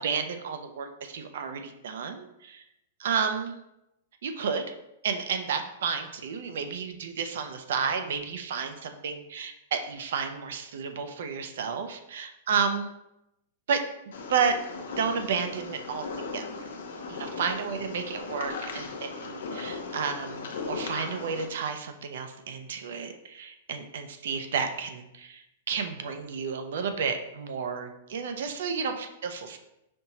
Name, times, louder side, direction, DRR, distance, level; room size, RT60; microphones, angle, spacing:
voice 1, 0.0-2.6 3.0-3.6 4.2-4.7 5.0-12.9 13.7-13.8 14.3-14.6 15.0-16.1 16.3-16.5 17.1-29.6, right 6 dB, 75° right, 7 dB, 0.5 m, -31 dB
sound 1, 14.1-21.5, left 4 dB, 80° left, 0.7 m, -37 dB
5.2 x 2.9 x 2.8 m, 0.87 s
hypercardioid pair, 140°, 0 cm